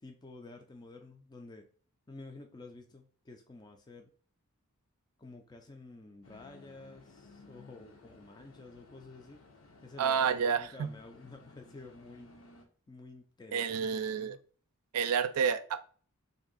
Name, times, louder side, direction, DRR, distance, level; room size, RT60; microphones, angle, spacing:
voice 1, 0.0-1.7 2.1-4.1 5.2-9.4 9.8-12.3 12.9-14.4, left 3 dB, 20° left, 4 dB, 0.3 m, -51 dB
sound 1, 6.2-12.7, left 3 dB, 70° left, 0.8 m, -57 dB
voice 2, 10.0-10.9 13.5-14.4 14.9-15.8, right 7 dB, 85° right, 12 dB, 0.4 m, -29 dB
3.4 x 2.6 x 3.8 m, 0.42 s
head